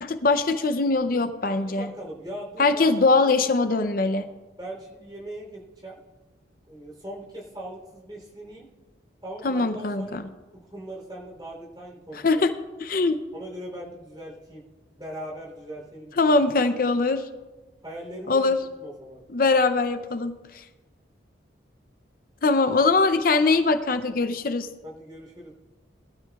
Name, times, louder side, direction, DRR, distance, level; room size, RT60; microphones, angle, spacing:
voice 1, 0.0-1.9 2.6-4.3 9.4-10.3 12.2-12.5 12.8-13.2 16.2-17.3 18.3-18.6 19.3-20.6 22.4-24.7, left 3 dB, 50° left, 8 dB, 0.6 m, -22 dB
voice 2, 1.6-3.3 4.6-6.0 6.7-8.7 9.2-12.4 13.3-14.6 15.0-16.4 17.8-19.2 24.8-25.5, right 1 dB, 25° right, -3 dB, 3.4 m, -40 dB
20.5 x 12.5 x 2.4 m, 1.2 s
head